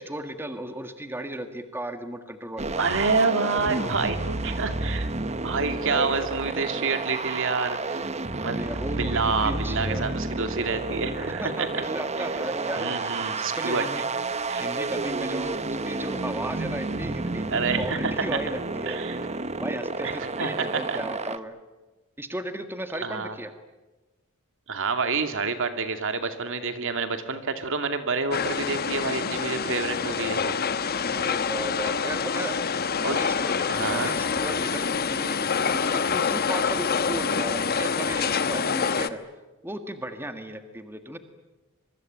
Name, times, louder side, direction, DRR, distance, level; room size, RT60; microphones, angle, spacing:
voice 1, 0.0-2.7 5.8-6.2 8.4-10.0 11.2-14.0 14.6-17.4 17.8-21.6 22.2-23.5 31.1-32.6 33.0-39.2 39.6-41.2, right 1 dB, 10° right, 8 dB, 1.7 m, -35 dB
sound 1, 2.6-21.4, right 3 dB, 30° right, 1.2 m, -30 dB
voice 2, 2.8-5.1 5.4-8.1 8.4-8.6 9.0-11.7 12.8-13.9 14.5-14.6 17.5-18.4 18.9-19.2 20.0-21.0 23.0-23.4 24.7-30.6 32.0-32.1 33.0-33.2 33.7-34.1, right 4 dB, 65° right, 8 dB, 2.5 m, -28 dB
sound 2, 28.3-39.1, left 6 dB, 45° left, 1.1 m, -26 dB
26.0 x 23.5 x 9.1 m, 1.2 s
head